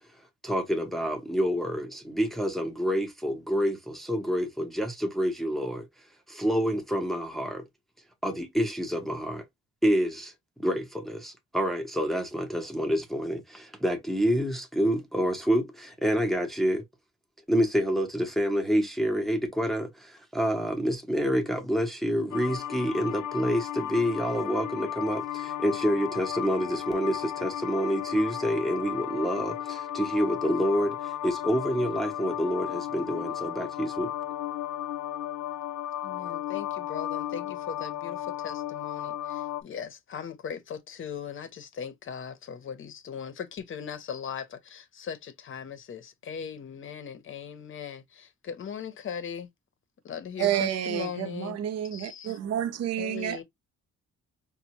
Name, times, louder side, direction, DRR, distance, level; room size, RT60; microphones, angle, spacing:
voice 1, 0.4-5.9 6.3-7.6 8.2-9.4 9.8-10.3 10.6-16.8 17.5-34.1, equal, ahead, 0.6 m, -28 dB
sound 1, 22.3-39.6, left 12 dB, 85° left, 0.5 m, -34 dB
voice 2, 36.0-49.5 50.0-51.6 51.9-52.4 53.0-53.4, left 7 dB, 45° left, 0.7 m, -39 dB
voice 3, 50.4-53.4, right 11 dB, 60° right, 0.6 m, -29 dB
5.2 x 2.2 x 2.9 m
wide cardioid pair, 170°, 30 cm